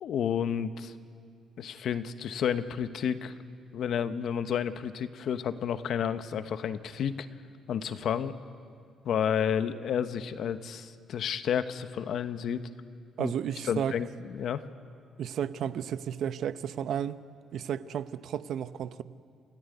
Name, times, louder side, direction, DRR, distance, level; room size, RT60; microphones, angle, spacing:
voice 1, 0.0-0.9 1.6-3.3 3.7-7.3 7.7-8.3 9.0-12.6 13.2-13.3 13.7-14.6, left 8 dB, 70° left, 1.1 m, -31 dB
voice 2, 13.2-13.9 15.2-17.2 17.5-19.0, right 9 dB, 70° right, 0.8 m, -33 dB
28.0 x 14.5 x 9.5 m
cardioid pair, 90°, 0 cm